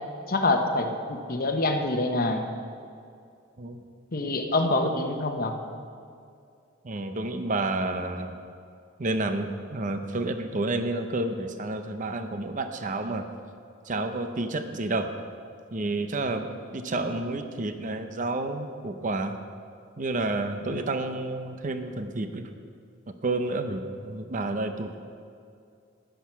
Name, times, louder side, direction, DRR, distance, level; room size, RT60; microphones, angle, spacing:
voice 1, 0.3-2.5 4.1-5.6 20.7-20.8, left 2 dB, 45° left, 4 dB, 1.0 m, -26 dB
voice 2, 6.8-8.4 9.0-13.3 13.9-15.1 15.7-19.4 20.0-22.4 23.2-25.0, right 2 dB, 40° right, 7 dB, 0.7 m, -30 dB
10.5 x 10.5 x 5.7 m, 2.4 s
head